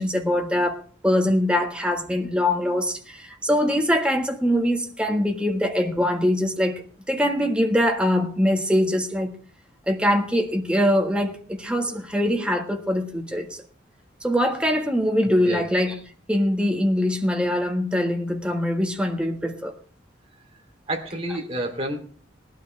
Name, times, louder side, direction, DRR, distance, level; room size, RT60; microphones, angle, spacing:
voice 1, 0.0-9.3 9.9-13.6 14.2-16.0 16.3-19.7, equal, 5° right, 1.5 m, -23 dB
voice 2, 20.9-22.0, right 1 dB, 30° right, 3.1 m, -29 dB
19.5 x 12.0 x 3.3 m
head